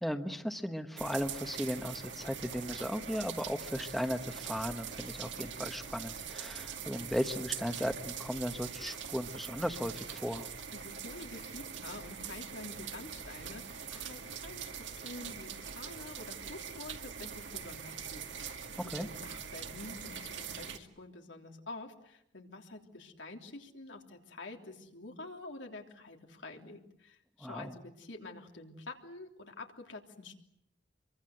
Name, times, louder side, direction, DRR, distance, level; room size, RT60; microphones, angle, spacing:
voice 1, 0.0-10.5 18.9-19.1 27.4-27.7, equal, ahead, 6 dB, 1.1 m, -36 dB
sound 1, 1.0-20.8, right 7 dB, 80° right, 2.3 m, -43 dB
voice 2, 10.7-14.7 15.0-30.4, left 2 dB, 90° left, 2 dB, 3.3 m, -48 dB
27.0 x 23.5 x 7.9 m, 0.77 s
head